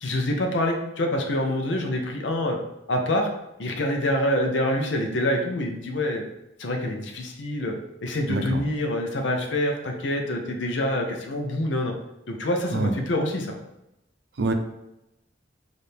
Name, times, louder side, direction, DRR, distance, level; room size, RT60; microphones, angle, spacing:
voice 1, 0.0-2.6 2.9-3.3 3.6-6.2 6.6-7.7 8.0-11.9 12.3-13.5, left 1 dB, 85° left, 2 dB, 0.6 m, -26 dB
voice 2, 8.3-8.6 12.7-12.9 14.4-14.5, right 3 dB, 70° right, 6 dB, 0.5 m, -25 dB
4.3 x 2.6 x 3.4 m, 0.89 s
head